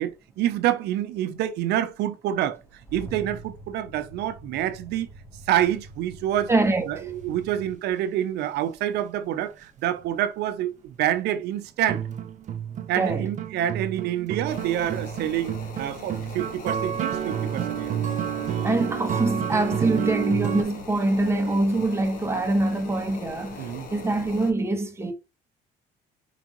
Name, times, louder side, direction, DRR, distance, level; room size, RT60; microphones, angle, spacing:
voice 1, 0.0-2.6 2.9-5.1 5.5-6.5 6.9-12.0 12.9-17.9 23.6-23.9, right 12 dB, 80° right, 0.7 m, -27 dB
sound 1, 2.5-7.8, right 1 dB, 15° left, 2.0 m, -45 dB
voice 2, 6.5-7.1 12.9-13.3 18.6-23.6 23.9-25.1, right 2 dB, 15° right, 1.2 m, -24 dB
sound 2, 11.9-20.6, right 9 dB, 45° right, 0.7 m, -30 dB
sound 3, 14.5-24.5, left 4 dB, 50° left, 1.4 m, -41 dB
5.0 x 3.5 x 3.0 m
cardioid pair, 110°, 17 cm